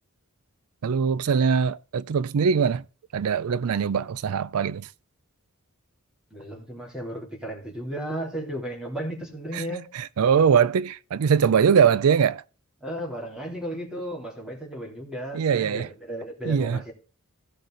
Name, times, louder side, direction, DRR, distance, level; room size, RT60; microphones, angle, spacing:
voice 1, 0.8-2.8 3.1-4.9 9.5-9.6 9.9-12.4 15.3-15.9 16.5-16.8, right 6 dB, 75° right, 0.4 m, -22 dB
voice 2, 6.3-9.9 12.8-16.9, right 1 dB, 5° right, 3.3 m, -34 dB
15.5 x 6.4 x 3.9 m
head